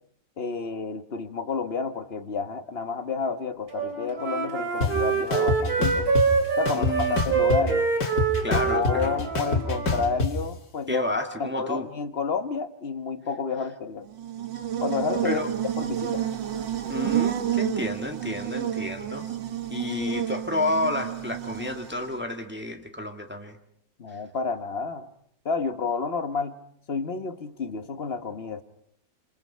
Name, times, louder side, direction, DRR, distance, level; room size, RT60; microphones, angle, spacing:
voice 1, 0.4-6.1 6.6-7.9 8.5-11.0 11.4-14.1 14.8-15.4 15.8-16.2 24.0-25.1 25.4-26.5 26.9-28.6, left 5 dB, 40° left, 9 dB, 1.2 m, -30 dB
Wind instrument woodwind instrument, 3.7-10.1, right 5 dB, 50° right, 4.0 m, -26 dB
sound 1, 4.8-4.9 5.3-6.3 6.7-7.7 8.0-10.3, left 3 dB, 55° left, 2.8 m, -25 dB
voice 2, 6.7-7.2 8.4-9.2 10.9-11.9 15.2-15.5 16.9-19.3 19.7-23.6, left 2 dB, 5° right, 4 dB, 1.7 m, -30 dB
Buzz, 14.1-22.2, right 10 dB, 80° right, 2.0 m, -30 dB
27.0 x 27.0 x 5.6 m, 0.68 s
omnidirectional pair, 2.0 m